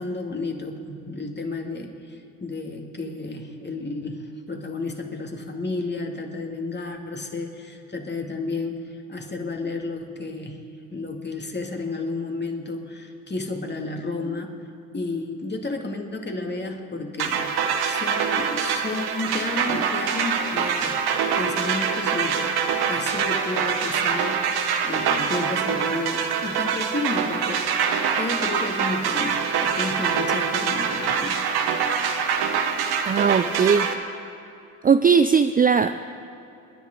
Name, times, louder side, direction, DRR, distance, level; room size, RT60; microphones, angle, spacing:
voice 1, 0.0-10.6 10.9-14.6 14.9-17.5 17.8-21.0 21.4-22.5 22.9-31.4, left 3 dB, 25° left, 3 dB, 2.4 m, -32 dB
sound 1, 17.2-33.9, right 7 dB, 65° right, 1.4 m, -24 dB
voice 2, 33.0-33.9 34.8-35.9, right 6 dB, 20° right, 9 dB, 0.5 m, -18 dB
29.5 x 10.5 x 3.9 m, 2.7 s
hypercardioid pair, 60°, 42 cm